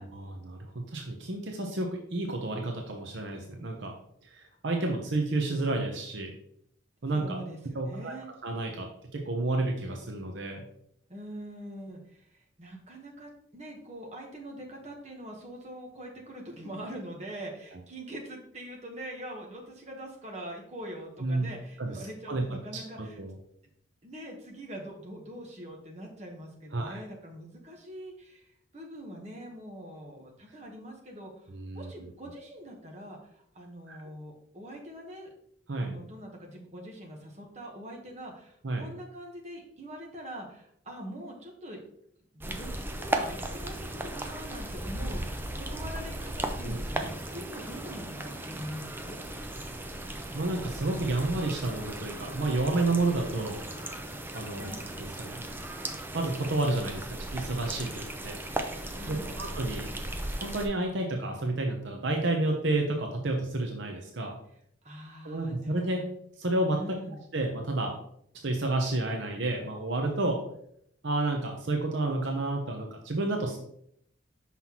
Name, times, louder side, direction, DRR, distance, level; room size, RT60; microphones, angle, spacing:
voice 1, 0.0-3.9 4.2-6.3 7.0-7.4 7.7-8.1 8.4-8.9 9.1-10.7 21.2-21.5 21.8-22.4 22.7-22.8 23.2-23.3 26.7-27.0 31.5-32.1 33.9-34.1 35.7-35.9 38.6-38.9 46.6-47.5 50.3-53.6 54.3-55.4 56.1-58.4 59.1-59.9 60.4-64.4 65.2-66.0 66.4-66.8 67.3-67.9 68.4-70.4 71.0-73.6, right 2 dB, 65° right, 2 dB, 0.8 m, -30 dB
voice 2, 7.1-8.3 11.1-23.2 24.0-28.5 28.7-35.3 35.8-41.8 42.3-49.2 54.5-54.8 58.6-59.4 64.8-66.1 66.7-67.2, right 1 dB, 35° right, 0 dB, 1.2 m, -43 dB
sound 1, 42.4-60.7, right 1 dB, 10° right, 0.4 m, -37 dB
5.7 x 5.6 x 2.9 m, 0.68 s
head